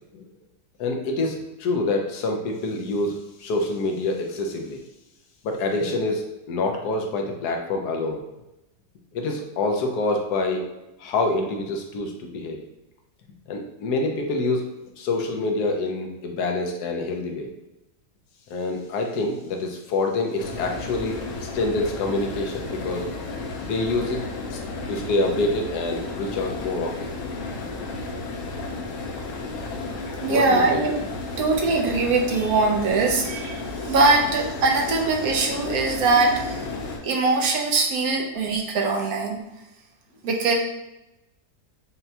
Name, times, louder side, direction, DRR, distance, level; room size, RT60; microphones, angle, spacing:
voice 1, 0.8-4.8 5.4-8.2 9.1-10.6 11.0-12.6 13.5-14.7 15.0-17.5 18.5-23.2 23.6-24.2 24.5-24.6 24.9-27.1 30.3-30.8 36.8-37.2, left 2 dB, 80° left, 2 dB, 1.2 m, -26 dB
sound 1, 20.4-37.0, left 3 dB, 60° left, 0.9 m, -33 dB
voice 2, 30.2-31.0 31.4-36.6 37.0-39.4 40.2-40.5, right 3 dB, 70° right, 1 dB, 1.1 m, -22 dB
5.7 x 2.2 x 2.7 m, 0.95 s
omnidirectional pair, 1.7 m